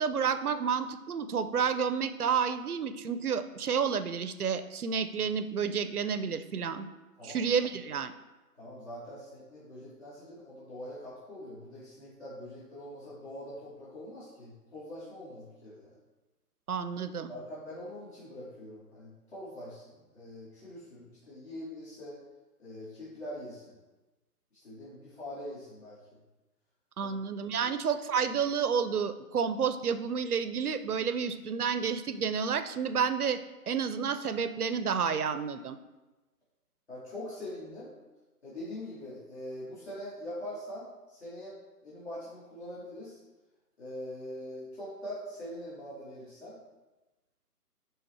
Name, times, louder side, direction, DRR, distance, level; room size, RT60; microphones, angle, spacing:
voice 1, 0.0-6.9 7.2-8.1 16.7-17.3 27.0-33.4 33.7-35.8, right 6 dB, 70° right, 11 dB, 0.7 m, -30 dB
voice 2, 8.6-16.0 17.3-22.2 22.6-23.8 24.6-26.2 27.0-27.1 27.6-27.7 36.9-37.9 38.4-41.6 41.8-43.2 43.8-46.6, left 1 dB, 45° left, -10 dB, 2.6 m, -43 dB
10.5 x 3.6 x 4.3 m, 1.1 s
hypercardioid pair, 175°, 47 cm